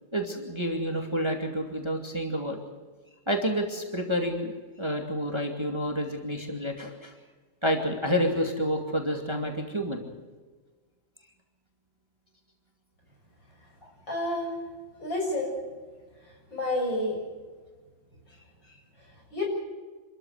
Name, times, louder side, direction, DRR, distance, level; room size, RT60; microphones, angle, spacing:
voice 1, 0.1-2.6 3.3-4.5 4.8-7.1 7.6-10.0 13.8-13.9, equal, 15° right, 3 dB, 2.4 m, -29 dB
voice 2, 14.1-14.5 15.0-15.5 16.5-17.2 19.3-19.5, left 1 dB, 70° left, 0 dB, 7.4 m, -29 dB
27.0 x 14.0 x 8.0 m, 1.4 s
omnidirectional pair, 2.1 m